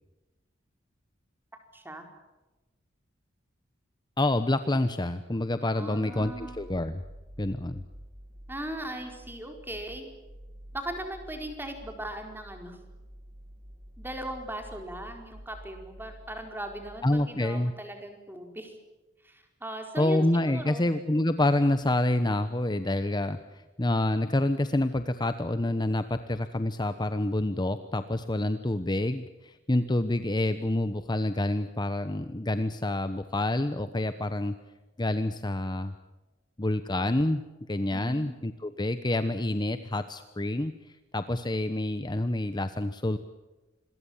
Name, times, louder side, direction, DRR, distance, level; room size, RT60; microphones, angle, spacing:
voice 1, 1.7-2.1 5.7-6.6 8.5-10.1 10.7-12.8 14.0-18.7 19.2-20.9 37.9-38.4, right 1 dB, 10° right, 4 dB, 4.6 m, -39 dB
voice 2, 4.2-7.0 7.4-7.8 17.0-17.7 20.0-34.5 35.0-35.9 36.6-37.4 37.7-40.7 41.1-43.2, left 1 dB, 25° left, 10 dB, 1.0 m, -27 dB
sound 1, 6.1-17.3, equal, 45° right, 1.8 m, -49 dB
27.0 x 22.0 x 7.4 m, 1.1 s
head